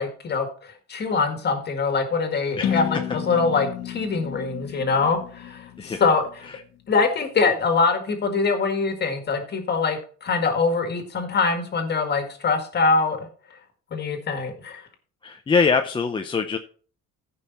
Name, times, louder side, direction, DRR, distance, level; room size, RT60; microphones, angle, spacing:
voice 1, 0.0-6.2 6.9-13.3 13.9-14.8, left 4 dB, 35° left, 6 dB, 1.9 m, -23 dB
sound 1, 2.6-6.5, left 9 dB, 60° left, 1.0 m, -32 dB
voice 2, 15.2-16.6, left 5 dB, 15° left, 5 dB, 0.5 m, -23 dB
14.5 x 5.5 x 4.1 m, 0.43 s
cardioid pair, 155°, 30 cm